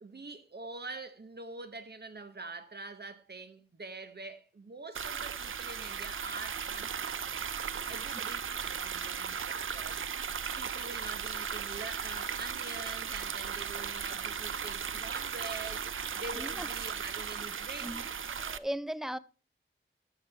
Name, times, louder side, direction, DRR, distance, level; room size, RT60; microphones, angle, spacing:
voice 1, 0.0-7.3 7.9-18.2, right 3 dB, 50° right, 1.1 m, -45 dB
sound 1, 4.9-18.6, right 7 dB, 70° right, 0.5 m, -36 dB
voice 2, 16.3-16.7 17.8-18.1 18.5-19.2, right 1 dB, ahead, 0.5 m, -37 dB
12.5 x 6.9 x 3.4 m
wide cardioid pair, 55°, 21 cm